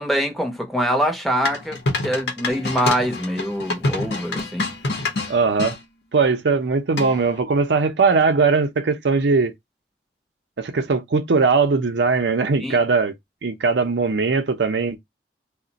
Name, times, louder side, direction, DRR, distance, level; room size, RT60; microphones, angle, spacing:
voice 1, 0.0-4.7 12.6-12.8, equal, ahead, 0.6 m, -24 dB
sound 1, 1.5-5.8 7.0-7.4, left 2 dB, 70° left, 0.8 m, -26 dB
voice 2, 5.3-5.8 6.1-9.5 10.6-13.1 13.4-15.0, right 4 dB, 75° right, 0.5 m, -20 dB
2.4 x 2.1 x 3.8 m
head